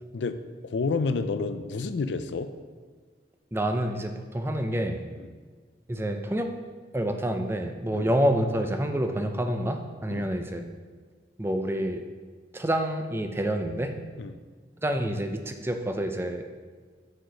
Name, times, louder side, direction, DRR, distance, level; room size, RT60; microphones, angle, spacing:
voice 1, 0.6-2.5 5.2-5.3 7.9-8.1 10.1-10.3 14.2-14.4, left 4 dB, 80° left, 10 dB, 0.4 m, -29 dB
voice 2, 3.5-5.0 5.9-6.5 6.9-10.6 11.4-12.0 12.5-13.9 14.8-16.4, right 1 dB, 15° right, 5 dB, 0.4 m, -28 dB
6.4 x 4.8 x 5.0 m, 1.5 s
head